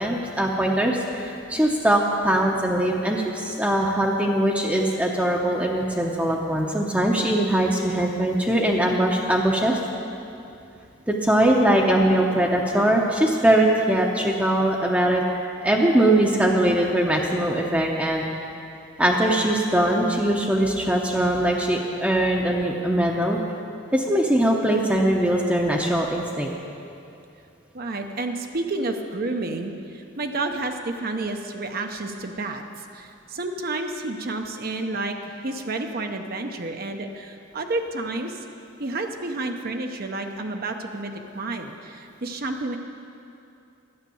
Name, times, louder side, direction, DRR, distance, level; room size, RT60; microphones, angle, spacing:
voice 1, 0.0-9.8 11.1-15.2 15.6-18.3 19.0-23.4 23.9-26.5, right 1 dB, 5° right, -1 dB, 0.7 m, -21 dB
voice 2, 27.7-38.4 38.8-42.8, right 2 dB, 45° right, 4 dB, 0.7 m, -30 dB
12.0 x 9.5 x 7.0 m, 2.6 s
head